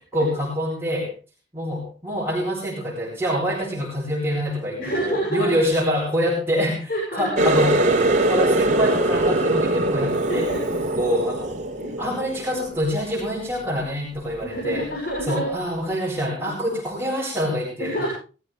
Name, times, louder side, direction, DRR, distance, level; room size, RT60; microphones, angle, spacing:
voice 1, 0.1-1.1 1.5-7.8 8.2-10.5 11.0-11.6 12.0-14.9 15.3-18.1, equal, 10° right, -7 dB, 7.6 m, -25 dB
voice 2, 4.8-5.5 6.9-7.7 10.3-10.8 11.8-11.9 14.4-15.5 16.4-16.5 17.8-18.1, right 1 dB, 55° left, -2 dB, 7.4 m, -28 dB
Water tap faucet, 7.4-12.8 13.2-13.7 14.2-14.4 15.2-15.3, right 2 dB, 40° right, 2.7 m, -22 dB
20.5 x 16.5 x 3.4 m, 0.37 s
head